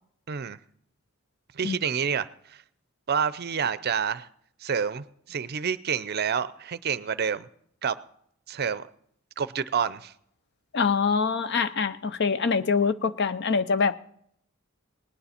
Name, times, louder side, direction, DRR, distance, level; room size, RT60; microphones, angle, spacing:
voice 1, 0.3-0.6 1.5-2.6 3.1-4.3 4.6-7.5 7.8-8.0 8.5-8.9 9.4-10.1, right 7 dB, 50° right, 0.5 m, -28 dB
voice 2, 10.7-14.0, left 5 dB, 55° left, 0.6 m, -24 dB
19.0 x 9.6 x 4.3 m
head